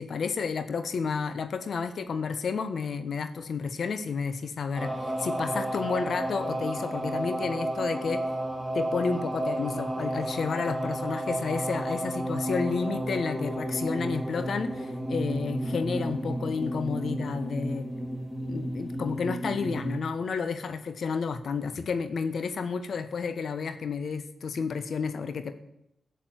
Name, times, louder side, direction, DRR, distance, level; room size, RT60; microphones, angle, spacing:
voice 1, 0.0-8.2 8.7-17.9 18.5-25.5, left 5 dB, 70° left, 10 dB, 1.3 m, -31 dB
sound 1, 4.7-20.0, right 1 dB, 10° right, 3.2 m, -32 dB
13.0 x 7.0 x 9.6 m, 0.83 s
supercardioid pair, 45°, 0 cm